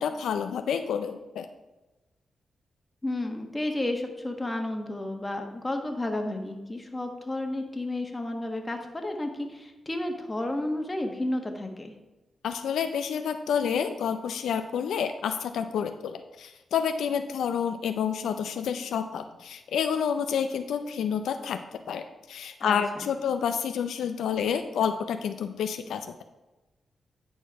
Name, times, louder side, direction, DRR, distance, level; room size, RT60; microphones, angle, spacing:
voice 1, 0.0-1.5 12.4-21.6 21.9-26.2, left 7 dB, 85° left, 7 dB, 0.4 m, -29 dB
voice 2, 3.0-11.9 22.6-23.1, left 1 dB, 20° left, 4 dB, 1.4 m, -32 dB
10.0 x 4.4 x 4.6 m, 1.1 s
cardioid pair, 60°, 0 cm